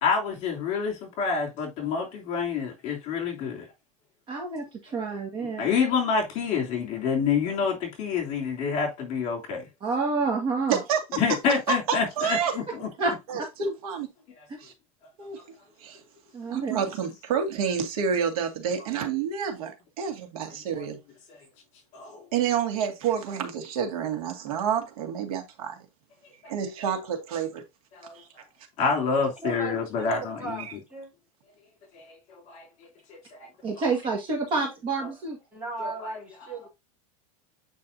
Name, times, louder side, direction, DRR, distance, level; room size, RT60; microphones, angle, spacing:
voice 1, 0.0-3.6 5.6-9.6 11.2-12.9 14.4-14.5 20.7-20.8 21.3-21.4 21.9-22.3 26.4-26.5 27.9-28.1 28.8-30.6 31.9-32.7 33.1-33.5 35.8-35.9, left 5 dB, 40° left, 3.1 m, -28 dB
voice 2, 4.3-5.7 9.8-10.8 13.0-13.1 16.3-16.8 33.6-35.4, right 4 dB, 25° right, 1.7 m, -28 dB
voice 3, 10.7-11.0 11.7-12.6 13.3-14.1 14.6-14.7 15.2-15.4 15.8-16.0 16.5-21.0 22.3-25.8 26.5-27.6 28.1-28.3, right 7 dB, 75° right, 2.2 m, -29 dB
voice 4, 29.1-31.1 35.5-36.7, right 3 dB, 5° right, 3.8 m, -37 dB
8.8 x 5.1 x 2.7 m
supercardioid pair, 155°, 19 cm